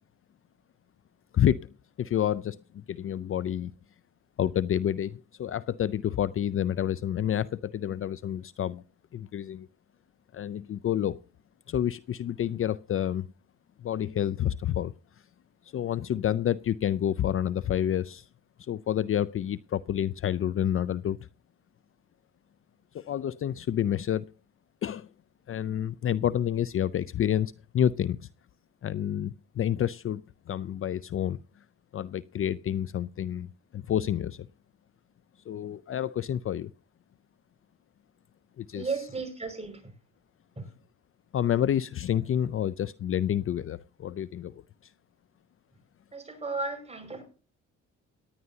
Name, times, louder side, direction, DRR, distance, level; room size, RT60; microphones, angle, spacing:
voice 1, 1.3-3.7 4.4-8.8 9.1-9.7 10.3-11.2 11.7-13.3 13.8-14.9 15.7-18.3 18.6-21.2 22.9-24.3 24.8-25.1 25.5-28.2 28.8-31.4 31.9-34.5 35.5-36.7 38.6-38.9 41.3-44.9, left 10 dB, 45° left, 0.5 m, -29 dB
voice 2, 38.7-39.9 40.6-40.7 46.1-47.2, right 3 dB, 20° right, 5.7 m, -34 dB
18.5 x 10.5 x 2.8 m
cardioid pair, 90°, 30 cm